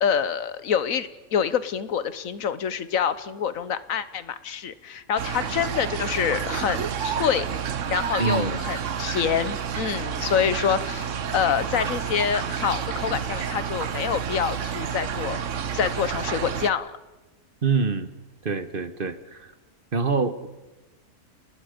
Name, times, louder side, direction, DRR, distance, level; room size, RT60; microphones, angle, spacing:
voice 1, 0.0-7.5 7.9-15.4 15.7-16.9, left 8 dB, 70° left, 14 dB, 1.4 m, -26 dB
sound 1, 5.2-16.7, right 7 dB, 60° right, 1.3 m, -30 dB
voice 2, 8.2-8.6 17.6-18.1 18.4-19.5 19.9-20.5, right 5 dB, 40° right, 11 dB, 1.3 m, -25 dB
30.0 x 20.0 x 5.2 m, 1.1 s
omnidirectional pair, 1.5 m